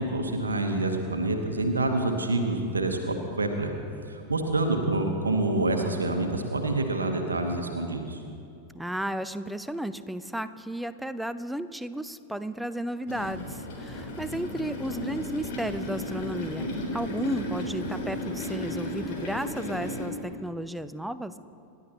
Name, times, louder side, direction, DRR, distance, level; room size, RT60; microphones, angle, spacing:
voice 1, 0.0-3.7 4.1-8.2, right 2 dB, 75° right, 4 dB, 1.2 m, -27 dB
voice 2, 8.7-21.3, right 1 dB, 5° right, 13 dB, 0.5 m, -33 dB
sound 1, 13.1-20.1, left 1 dB, 50° left, 3.8 m, -34 dB
27.0 x 12.0 x 3.0 m, 2.5 s
figure-of-eight pair, 90°, 0 cm